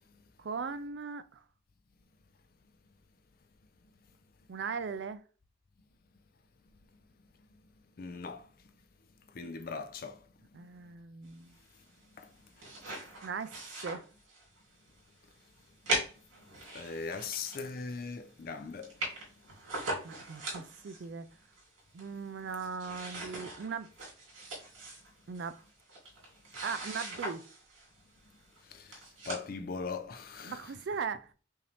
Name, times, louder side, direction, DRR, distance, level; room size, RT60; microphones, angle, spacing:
voice 1, 0.4-1.4 4.5-5.2 10.5-11.5 13.2-13.6 13.8-14.1 20.0-21.3 21.9-23.9 25.3-25.6 26.6-27.4 30.4-31.3, right 5 dB, 55° right, 0.4 m, -38 dB
voice 2, 8.0-8.5 9.3-10.2 12.2-12.3 16.7-18.9 28.7-30.6, left 4 dB, 45° left, 0.4 m, -40 dB
sound 1, 12.3-14.6 15.0-15.1 15.9-17.9 18.3-18.4 18.6-18.7 18.8-21.0 21.5-22.3 22.5-27.9 28.5-28.6 28.9-29.5, right 2 dB, 75° right, 2.5 m, -40 dB
5.5 x 2.7 x 3.3 m
head